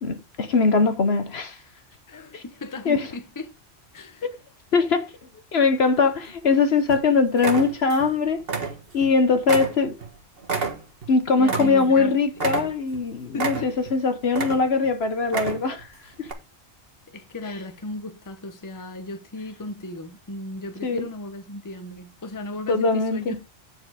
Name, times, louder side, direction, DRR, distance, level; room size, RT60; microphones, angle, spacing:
voice 1, 0.0-1.6 2.3-2.4 2.8-3.1 4.7-5.1 5.5-8.4 8.9-9.9 11.1-15.9 16.2-16.3 20.8-21.1 22.7-23.4, left 4 dB, 55° left, 1.1 m, -21 dB
voice 2, 2.1-3.5 3.9-4.2 11.4-12.2 12.6-12.7 13.3-13.7 17.1-23.3, left 2 dB, 15° left, 0.9 m, -36 dB
sound 1, 5.9-6.5 6.9-7.0 7.4-8.1 8.4-9.1 9.5-12.0 12.4-13.0 13.4-13.9 14.3-14.9 15.2-15.8 16.2-16.3, right 4 dB, 50° right, 1.7 m, -29 dB
9.6 x 4.8 x 4.8 m
omnidirectional pair, 1.3 m